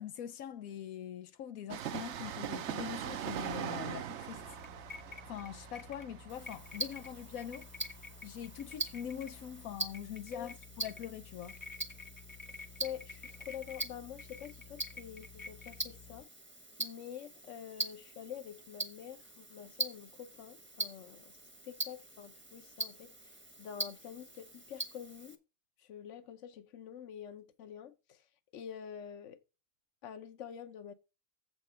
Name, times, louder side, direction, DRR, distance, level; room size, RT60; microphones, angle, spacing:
voice 1, 0.0-4.4 5.3-7.7 8.2-11.6, left 9 dB, 90° left, 1.2 m, -43 dB
Train, 1.7-9.1 9.4-9.5, right 10 dB, 60° right, 0.9 m, -42 dB
sound 1, 4.4-16.2, left 4 dB, 25° left, 0.4 m, -51 dB
Tick-tock, 6.3-25.4, right 2 dB, 10° right, 0.9 m, -43 dB
voice 2, 12.5-16.3 16.8-21.4 21.6-25.4 25.8-28.3 28.5-29.4 30.0-30.9, left 9 dB, 65° left, 1.2 m, -47 dB
7.7 x 5.9 x 5.6 m
omnidirectional pair, 1.4 m